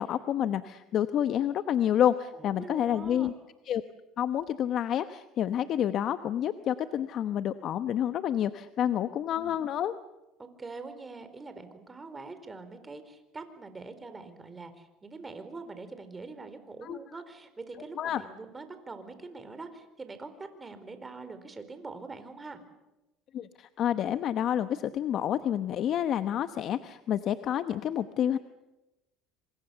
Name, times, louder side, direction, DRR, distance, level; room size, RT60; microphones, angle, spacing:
voice 1, 0.0-3.3 3.7-3.8 4.2-9.9 16.8-17.0 18.0-18.2 23.3-28.4, left 10 dB, 50° left, 11 dB, 1.0 m, -29 dB
voice 2, 2.3-3.3 8.8-9.1 10.4-22.6, right 3 dB, 20° right, 9 dB, 4.3 m, -44 dB
26.0 x 26.0 x 7.0 m, 0.99 s
supercardioid pair, 100°, 0 cm